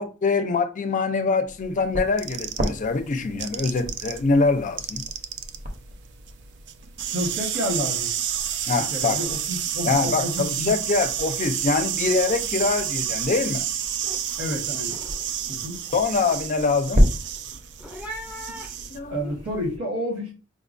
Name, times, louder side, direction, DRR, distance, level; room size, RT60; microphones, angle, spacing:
voice 1, 0.0-5.0 8.7-9.2 9.8-13.7 15.9-17.1 18.9-19.3, left 4 dB, 40° left, 0.4 m, -24 dB
sound 1, 1.5-19.8, equal, 40° right, 0.8 m, -32 dB
sound 2, 2.2-4.2 4.5-19.0, right 10 dB, 55° right, 0.3 m, -30 dB
voice 2, 7.1-8.1 8.9-10.8 14.4-15.0 15.5-15.8 19.1-20.3, equal, 75° right, 1.3 m, -30 dB
sound 3, 12.3-12.4 12.7-13.1 13.5-19.5, equal, 5° right, 0.7 m, -43 dB
4.7 x 2.3 x 2.5 m
head